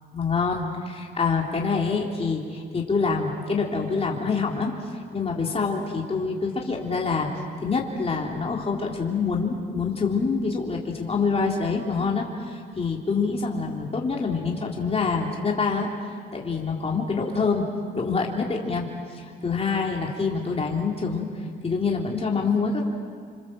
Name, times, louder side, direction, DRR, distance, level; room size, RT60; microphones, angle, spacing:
voice 1, 0.1-4.7 5.1-7.3 7.6-15.9 16.3-17.7 17.9-18.9 19.1-21.3 21.6-22.8, left 4 dB, 30° left, -1 dB, 3.5 m, -26 dB
29.5 x 26.5 x 7.6 m, 2.1 s
cardioid pair, 90°, 20 cm